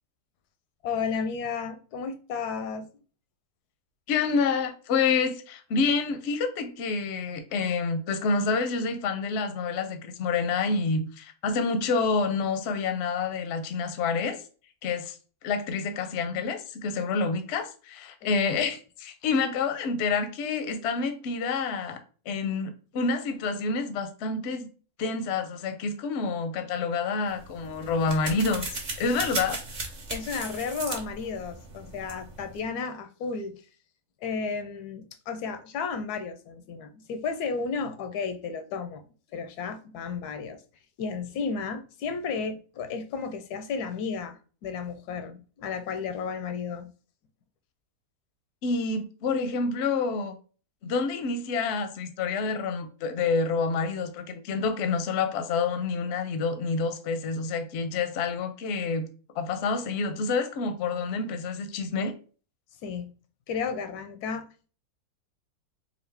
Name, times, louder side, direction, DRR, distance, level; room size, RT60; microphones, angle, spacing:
voice 1, 0.8-2.9 18.2-18.4 30.1-33.6 34.2-39.0 39.3-40.6 41.0-46.9 62.8-63.1 63.5-64.4, left 5 dB, 85° left, 1.2 m, -33 dB
voice 2, 4.1-14.4 14.8-15.2 15.4-22.0 22.3-24.7 25.0-29.6 48.6-50.4 50.8-59.1 59.4-62.1, left 4 dB, 60° left, 0.7 m, -28 dB
sound 1, 27.3-32.6, right 3 dB, 40° right, 0.7 m, -37 dB
3.9 x 2.5 x 3.3 m
omnidirectional pair, 1.6 m